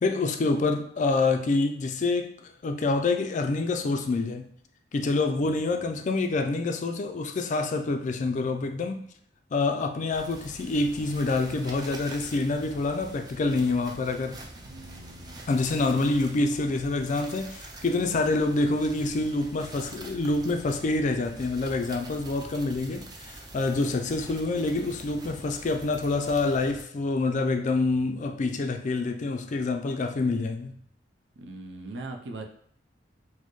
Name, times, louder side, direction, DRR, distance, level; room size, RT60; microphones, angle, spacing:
voice 1, 0.0-4.5 4.9-9.1 9.5-14.4 15.5-30.8, left 3 dB, 45° left, 0.4 m, -27 dB
voice 2, 5.4-5.8 14.5-15.4 31.4-32.4, right 2 dB, 85° right, 0.5 m, -41 dB
sound 1, 10.1-26.8, right 2 dB, 25° right, 0.4 m, -45 dB
4.3 x 2.1 x 3.0 m
head